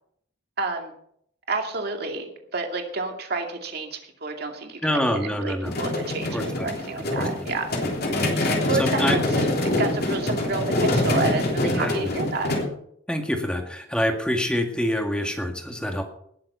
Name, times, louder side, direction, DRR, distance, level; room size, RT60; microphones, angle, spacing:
voice 1, 0.6-0.9 1.5-7.7 8.4-12.5, right 3 dB, 55° right, 3 dB, 2.4 m, -30 dB
voice 2, 4.8-5.7 6.3-6.7 7.2-7.5 7.8-7.9 8.8-9.2 11.6-12.1 13.1-16.0, equal, 5° left, 3 dB, 1.9 m, -26 dB
sound 1, 5.7-12.7, left 1 dB, 55° left, 3.3 m, -25 dB
19.5 x 7.7 x 5.7 m, 0.68 s
head